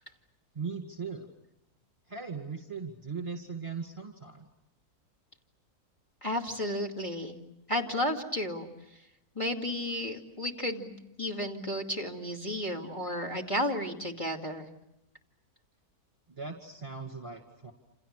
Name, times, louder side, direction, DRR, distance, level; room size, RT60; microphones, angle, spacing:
voice 1, 0.5-1.3 2.1-4.5 16.3-17.7, right 5 dB, 20° right, 3 dB, 2.2 m, -39 dB
voice 2, 6.2-7.4 7.7-8.7 9.4-14.7, left 1 dB, 20° left, 2 dB, 2.4 m, -33 dB
28.5 x 28.5 x 6.7 m, 0.85 s
omnidirectional pair, 1.6 m